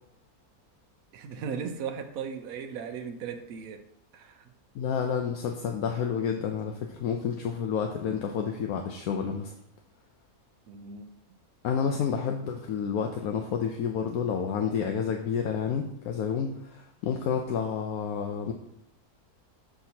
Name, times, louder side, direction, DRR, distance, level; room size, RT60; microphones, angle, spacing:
voice 1, 1.1-3.8 4.1-4.5 10.7-11.1, right 6 dB, 75° right, 6 dB, 1.1 m, -37 dB
voice 2, 4.7-9.5 11.6-18.5, left 7 dB, 75° left, 3 dB, 1.1 m, -30 dB
6.9 x 5.8 x 2.8 m, 0.75 s
omnidirectional pair, 1.6 m